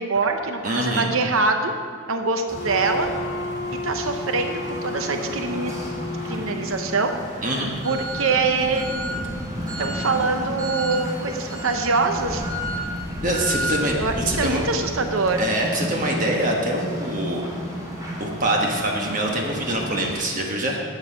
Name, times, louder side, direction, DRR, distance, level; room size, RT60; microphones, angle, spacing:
voice 1, 0.0-1.7 2.1-3.1 3.8-5.7 6.3-7.4 7.8-8.9 9.8-12.4 13.8-15.4, right 3 dB, 75° right, 6 dB, 0.8 m, -24 dB
voice 2, 0.6-1.1 7.4-7.7 13.2-14.7 15.4-17.4 18.2-20.8, right 1 dB, 40° right, 0 dB, 1.2 m, -24 dB
Wind instrument woodwind instrument, 2.5-7.2, left 2 dB, 55° left, 0.8 m, -33 dB
sound 1, 2.5-20.1, equal, 15° right, 2.4 m, -32 dB
12.5 x 7.7 x 5.1 m, 2.2 s
head